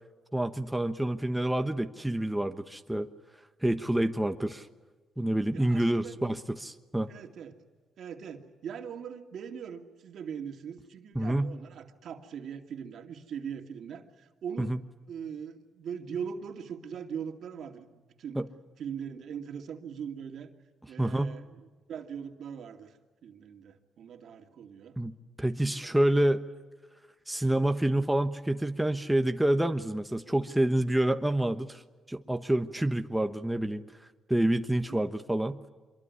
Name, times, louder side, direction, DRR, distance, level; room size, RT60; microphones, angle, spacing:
voice 1, 0.3-3.1 3.6-4.7 5.2-7.1 11.1-11.5 14.6-14.8 18.3-18.4 21.0-21.4 25.0-26.4 27.3-31.8 32.1-33.8 34.3-35.6, right 1 dB, 5° right, 7 dB, 1.2 m, -28 dB
voice 2, 5.5-6.2 7.1-7.6 8.0-14.7 15.1-18.4 18.8-20.5 20.9-24.9 25.8-25.9 34.9-35.0, right 7 dB, 65° right, 5 dB, 2.5 m, -41 dB
25.5 x 23.0 x 9.7 m, 1.3 s
cardioid pair, 90°, 0 cm